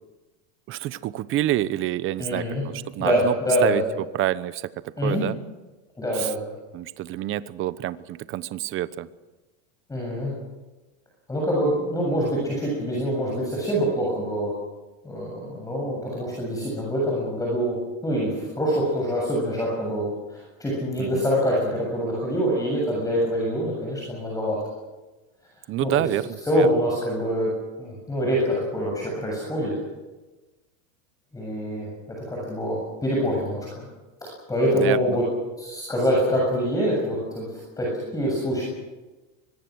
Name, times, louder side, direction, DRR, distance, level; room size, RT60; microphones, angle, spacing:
voice 1, 0.7-3.3 3.6-3.8 4.1-4.7 5.0-5.4 6.1-6.3 6.7-9.1 21.0-21.2 25.7-26.7 34.7-35.2, right 14 dB, 30° right, 16 dB, 1.0 m, -27 dB
voice 2, 2.2-2.6 3.0-3.8 5.0-5.2 6.0-6.4 9.9-10.3 11.3-14.5 15.0-17.8 18.0-24.6 25.8-25.9 26.4-27.5 27.8-29.7 31.3-33.9 34.2-35.2 35.6-38.7, equal, 10° left, -3 dB, 7.4 m, -25 dB
24.5 x 22.5 x 6.4 m, 1.2 s
supercardioid pair, 145°, 39 cm